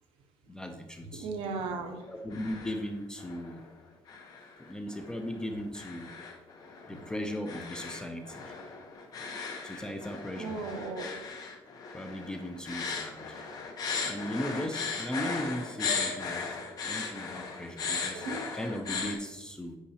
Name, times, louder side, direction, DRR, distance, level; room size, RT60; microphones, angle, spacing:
voice 1, 0.5-1.3 2.1-3.6 4.6-6.1 6.9-8.6 9.6-10.6 11.9-13.4 14.1-18.3 18.5-19.8, equal, 5° left, 5 dB, 0.4 m, -37 dB
voice 2, 1.1-2.0 10.3-11.2 18.1-18.4, right 4 dB, 65° right, 4 dB, 0.9 m, -36 dB
sound 1, 2.0-2.9 3.2-3.6 4.1-19.1, left 5 dB, 40° left, 1.0 m, -37 dB
8.4 x 5.6 x 2.8 m, 1.1 s
cardioid pair, 160°, 10 cm